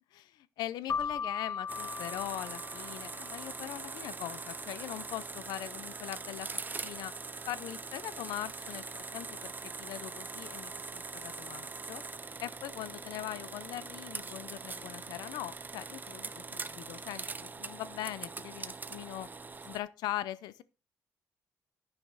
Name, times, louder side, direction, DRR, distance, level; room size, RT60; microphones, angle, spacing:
voice 1, 0.1-7.1 7.5-12.0 12.4-19.3 19.6-20.6, left 13 dB, 90° left, 0.5 m, -41 dB
Keyboard (musical), 0.9-3.4, left 6 dB, 35° left, 0.4 m, -37 dB
sound 1, 1.7-19.8, right 4 dB, 25° right, 0.6 m, -42 dB
10.5 x 5.7 x 3.9 m
cardioid pair, 80°, 7 cm